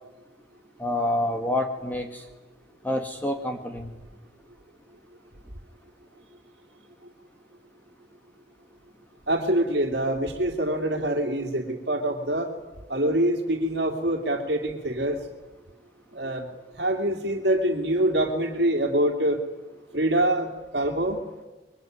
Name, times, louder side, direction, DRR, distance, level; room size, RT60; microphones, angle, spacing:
voice 1, 0.8-2.2 2.8-3.9, left 1 dB, 10° left, 4 dB, 1.9 m, -27 dB
voice 2, 9.3-12.5 12.9-15.2 16.1-16.5 16.7-19.4 19.9-21.2, right 1 dB, 65° right, 2 dB, 3.1 m, -25 dB
26.5 x 23.0 x 9.6 m, 1.2 s
head